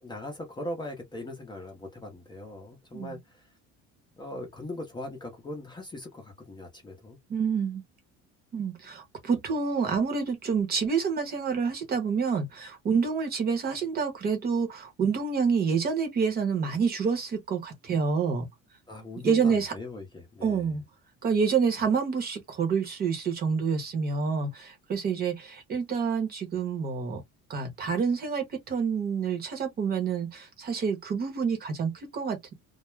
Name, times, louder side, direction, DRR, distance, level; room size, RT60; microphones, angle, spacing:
voice 1, 0.0-3.5 4.2-7.2 18.9-20.7, left 1 dB, 15° left, 0.6 m, -40 dB
voice 2, 7.3-7.8 8.5-18.5 19.2-19.7 20.4-20.8 21.2-27.2 27.5-32.5, right 5 dB, 30° right, 0.9 m, -28 dB
2.3 x 2.1 x 3.0 m
cardioid pair, 165°, 29 cm